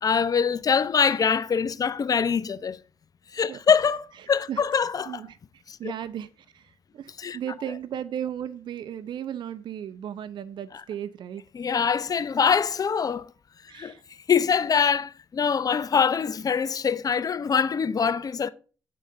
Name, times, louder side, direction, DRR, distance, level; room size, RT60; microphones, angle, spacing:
voice 1, 0.0-2.8 3.3-5.2 5.7-5.9 7.2-7.4 11.5-13.3 13.7-13.9 14.3-18.5, left 6 dB, 50° left, 0.7 m, -24 dB
voice 2, 4.2-11.4 13.7-14.0, right 9 dB, 70° right, 0.6 m, -36 dB
9.3 x 3.9 x 6.4 m
supercardioid pair, 60°, 8 cm